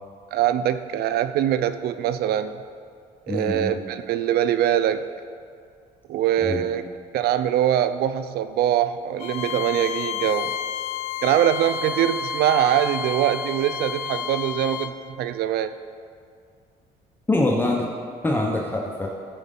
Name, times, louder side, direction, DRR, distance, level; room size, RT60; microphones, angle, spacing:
voice 1, 0.3-2.6 3.3-5.0 6.1-6.8 7.1-10.5 11.2-15.7, right 11 dB, 70° right, 12 dB, 0.5 m, -23 dB
voice 2, 3.3-3.8 6.4-6.6 17.3-17.9 18.2-19.1, left 2 dB, 10° left, -1 dB, 0.9 m, -24 dB
Bowed string instrument, 9.2-14.9, left 7 dB, 85° left, 0.7 m, -30 dB
14.5 x 4.9 x 5.4 m, 2.2 s
cardioid pair, 110°, 17 cm